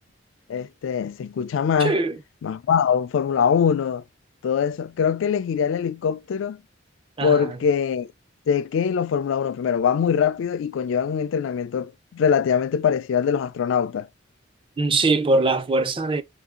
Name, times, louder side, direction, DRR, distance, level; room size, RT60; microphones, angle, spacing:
voice 1, 0.5-2.0 2.4-4.0 4.4-6.6 7.2-8.1 8.5-14.1, left 7 dB, 70° left, 0.3 m, -23 dB
voice 2, 1.8-2.2 7.2-7.6 14.8-16.2, right 3 dB, 25° right, 0.4 m, -22 dB
3.5 x 2.7 x 3.6 m
head